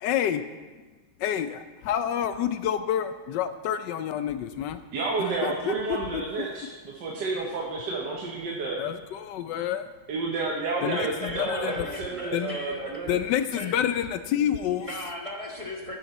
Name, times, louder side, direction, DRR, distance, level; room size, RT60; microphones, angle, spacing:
voice 1, 0.0-0.4 1.2-4.8 5.4-6.2 8.8-9.8 10.8-11.8 12.3-12.6 13.1-14.9, left 10 dB, 75° left, 11 dB, 1.0 m, -28 dB
voice 2, 4.9-8.9 10.1-13.3, right 3 dB, 60° right, -2 dB, 1.5 m, -31 dB
voice 3, 10.9-12.8 13.5-13.7 14.8-16.0, left 1 dB, 20° right, -1 dB, 1.0 m, -36 dB
11.0 x 10.0 x 4.1 m, 1.3 s
omnidirectional pair, 2.3 m